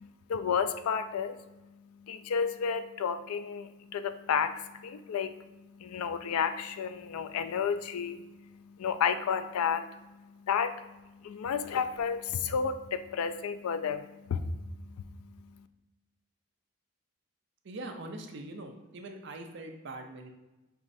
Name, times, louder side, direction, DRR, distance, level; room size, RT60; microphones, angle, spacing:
voice 1, 0.0-1.5 2.0-15.7, left 6 dB, 85° left, 10 dB, 0.3 m, -32 dB
voice 2, 17.6-20.3, right 2 dB, 55° right, 5 dB, 0.5 m, -42 dB
5.3 x 3.0 x 2.6 m, 1.1 s
head